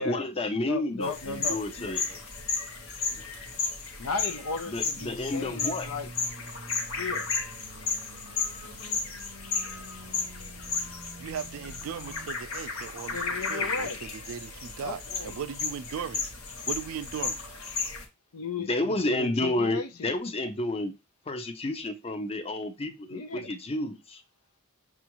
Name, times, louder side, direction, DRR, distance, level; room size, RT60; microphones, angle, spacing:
voice 1, 0.0-2.2 4.7-5.9 18.6-20.9 21.3-24.2, left 2 dB, 25° left, 0.5 m, -30 dB
voice 2, 0.5-1.9 4.0-6.1 7.0-7.3 13.1-14.0 14.8-15.4 18.3-20.1 23.1-23.5, left 4 dB, 90° left, 0.6 m, -36 dB
sound 1, 1.0-18.0, left 4 dB, 65° left, 0.8 m, -34 dB
sound 2, 5.0-12.3, right 1 dB, 90° right, 0.7 m, -48 dB
voice 3, 11.2-16.3 16.7-17.4, right 8 dB, 65° right, 0.3 m, -38 dB
6.1 x 2.4 x 2.9 m
head